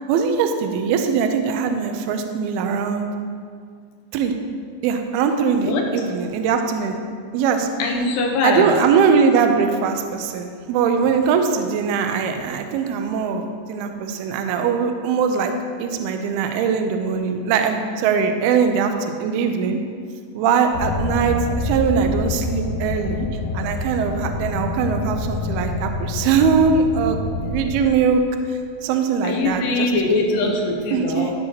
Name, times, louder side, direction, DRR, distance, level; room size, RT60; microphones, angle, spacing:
voice 1, 0.1-3.1 4.1-4.3 4.8-7.0 7.3-7.7 8.4-15.5 15.8-19.8 20.3-23.3 23.5-28.2 28.5-29.9 30.3-30.5 30.9-31.3, right 6 dB, 85° right, 5 dB, 2.3 m, -21 dB
voice 2, 5.6-5.9 7.8-8.7 29.2-31.3, left 3 dB, 70° left, 0 dB, 2.3 m, -22 dB
sound 1, 20.7-27.9, left 3 dB, 90° left, 3.2 m, -27 dB
15.0 x 6.3 x 2.9 m, 2.1 s
omnidirectional pair, 5.1 m